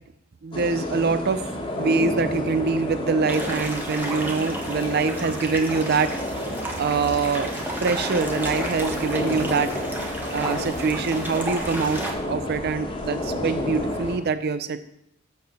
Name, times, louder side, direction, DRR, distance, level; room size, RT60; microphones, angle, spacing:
voice 1, 0.4-1.4 1.8-6.1 6.8-7.5 7.8-9.7 10.3-14.8, right 4 dB, 55° right, 12 dB, 0.5 m, -24 dB
sound 1, 0.5-14.2, left 1 dB, 25° left, 1.4 m, -30 dB
sound 2, 3.3-12.1, right 1 dB, 10° right, 1.4 m, -33 dB
6.8 x 6.5 x 6.8 m, 0.79 s
head